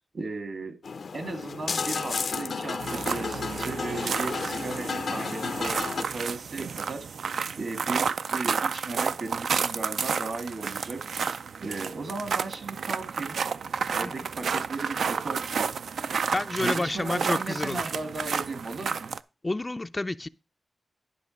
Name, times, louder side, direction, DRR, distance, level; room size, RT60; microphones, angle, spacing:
voice 1, 0.1-0.8 1.1-7.1 7.6-13.4 13.9-15.8 16.6-19.1, right 3 dB, 65° right, 1.6 m, -36 dB
sound 1, 0.8-6.0, left 5 dB, 70° left, 0.6 m, -32 dB
sound 2, 2.8-19.2, right 6 dB, 85° right, 0.3 m, -31 dB
voice 2, 16.3-17.9 19.4-20.3, left 2 dB, 25° left, 0.3 m, -29 dB
10.5 x 5.4 x 5.1 m
cardioid pair, 65°, 0 cm